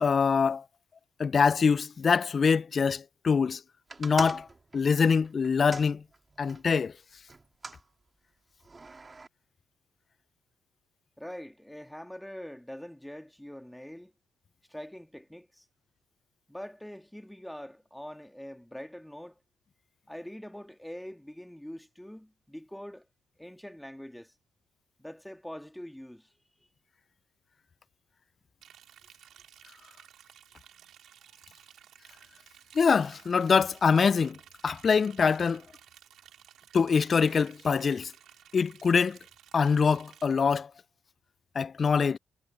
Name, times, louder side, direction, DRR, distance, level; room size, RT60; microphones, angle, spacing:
voice 1, 0.0-0.6 1.2-3.6 4.0-4.5 4.7-6.0 6.4-6.9 32.7-34.4 34.6-35.6 36.7-38.1 38.5-39.2 39.5-40.7 41.6-42.2, left 5 dB, 45° left, 0.3 m, -24 dB
sound 1, 3.9-6.7 7.3-7.8 8.6-9.3, right 3 dB, 30° right, 2.6 m, -42 dB
voice 2, 11.2-14.1 14.7-15.7 16.5-19.4 20.1-23.1 23.4-24.3 25.0-26.3, equal, 5° left, 2.3 m, -44 dB
Liquid, 28.6-40.2, right 10 dB, 70° right, 2.6 m, -56 dB
supercardioid pair, 60°, 0 cm